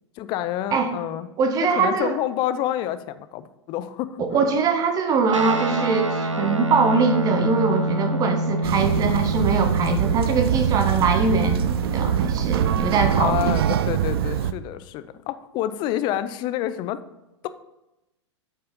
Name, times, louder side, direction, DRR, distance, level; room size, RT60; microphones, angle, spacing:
voice 1, 0.2-1.3 1.8-4.5 13.1-17.0, left 12 dB, 30° left, 12 dB, 0.6 m, -28 dB
voice 2, 1.4-2.1 4.2-13.5, right 4 dB, 25° right, 7 dB, 1.2 m, -22 dB
Guitar, 5.3-14.1, right 1 dB, 90° right, 0.8 m, -28 dB
sound 1, 8.6-14.5, right 10 dB, 55° right, 0.6 m, -23 dB
9.2 x 5.5 x 5.3 m, 0.94 s
figure-of-eight pair, 100°, 15 cm